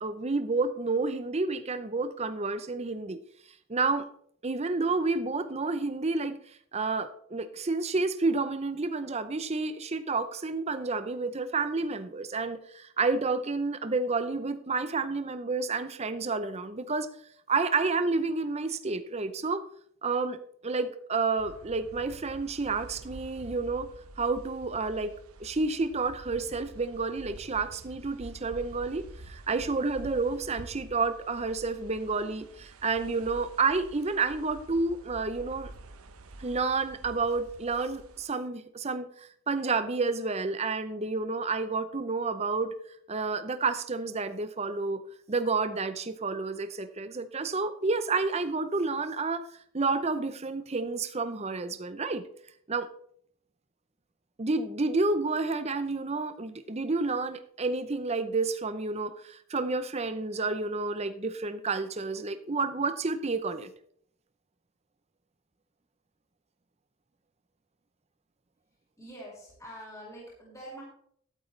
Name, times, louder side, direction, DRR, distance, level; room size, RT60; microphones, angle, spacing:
voice 1, 0.0-3.2 3.7-4.1 4.4-6.4 6.7-17.1 17.5-19.6 20.0-20.4 20.6-23.9 24.2-25.1 25.4-35.7 36.4-42.7 43.1-45.0 45.3-49.4 49.7-52.2 52.7-52.9 54.4-63.7, right 3 dB, 30° right, 11 dB, 0.7 m, -30 dB
sound 1, 21.4-38.3, right 2 dB, 80° right, 0.9 m, -48 dB
voice 2, 69.0-70.8, right 1 dB, 15° left, -5 dB, 4.9 m, -45 dB
12.0 x 12.0 x 3.3 m, 0.66 s
head